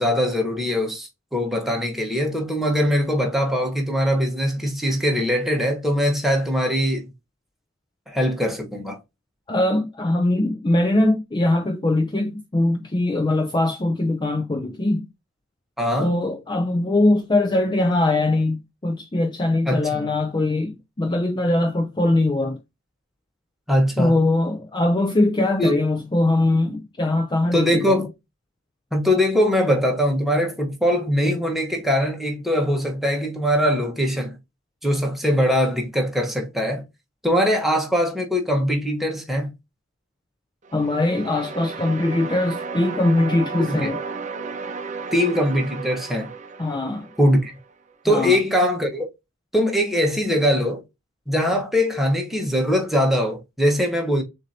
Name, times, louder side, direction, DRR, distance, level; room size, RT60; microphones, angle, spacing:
voice 1, 0.0-7.1 8.1-9.0 15.8-16.1 19.7-20.1 23.7-24.2 25.6-25.8 27.5-28.1 28.9-34.3 34.8-36.8 37.2-39.5 43.7-43.9 45.1-46.3 47.2-47.6 48.0-49.1 49.5-50.8 51.3-54.2, equal, ahead, 1.1 m, -21 dB
voice 2, 9.5-15.1 16.0-22.6 24.0-28.0 40.7-44.0 46.6-47.1 48.1-48.4, left 2 dB, 20° left, 0.5 m, -21 dB
sound 1, 40.6-47.7, right 4 dB, 35° right, 0.7 m, -34 dB
6.5 x 2.7 x 2.7 m
head